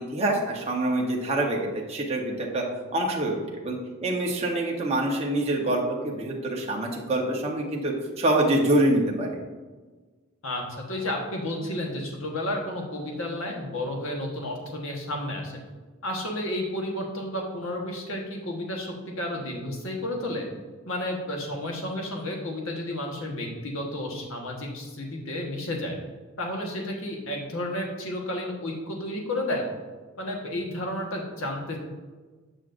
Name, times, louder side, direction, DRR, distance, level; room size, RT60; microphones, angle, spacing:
voice 1, 0.0-2.6 2.9-3.8 4.0-9.4, right 1 dB, 30° right, -2 dB, 1.0 m, -25 dB
voice 2, 10.4-15.6 16.0-20.5 20.9-26.0 26.4-29.7 30.2-31.8, left 1 dB, 70° left, 0 dB, 1.3 m, -32 dB
9.0 x 6.0 x 2.5 m, 1.3 s
head